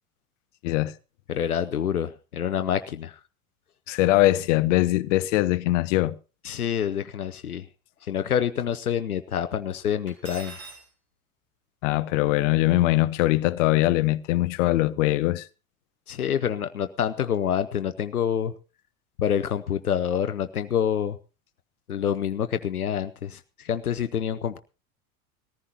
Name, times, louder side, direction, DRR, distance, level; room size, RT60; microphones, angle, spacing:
voice 1, 1.3-3.2 6.4-7.7 8.0-10.5 16.1-18.5 19.2-21.2 21.9-24.6, left 9 dB, 85° left, 0.6 m, -27 dB
voice 2, 3.9-6.1 11.8-15.5, left 17 dB, 60° left, 0.8 m, -22 dB
Cutlery silverware, 10.1-10.8, right 4 dB, 70° right, 4.5 m, -42 dB
20.5 x 14.5 x 2.9 m
figure-of-eight pair, 75°, 43 cm